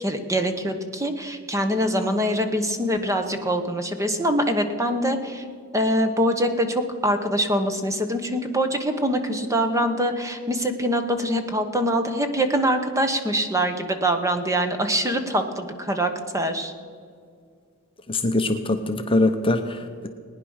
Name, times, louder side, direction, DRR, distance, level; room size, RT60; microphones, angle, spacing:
voice 1, 0.0-5.4 5.7-16.7, equal, 15° right, 7 dB, 1.1 m, -24 dB
voice 2, 18.1-20.1, left 2 dB, 25° left, 6 dB, 0.8 m, -23 dB
19.5 x 10.0 x 6.4 m, 2.1 s
head